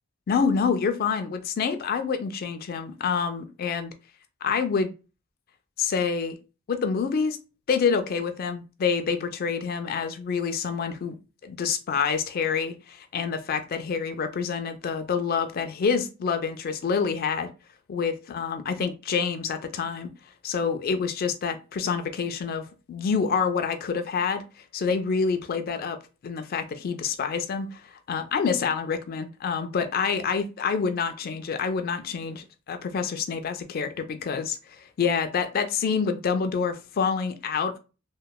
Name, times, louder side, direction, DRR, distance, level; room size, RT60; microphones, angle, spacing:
voice 1, 0.3-3.9 4.4-4.9 5.8-6.4 6.7-7.4 7.7-11.2 11.4-17.5 17.9-20.1 20.4-24.4 24.7-37.8, left 6 dB, 45° left, 0.3 m, -27 dB
3.0 x 2.1 x 2.2 m
head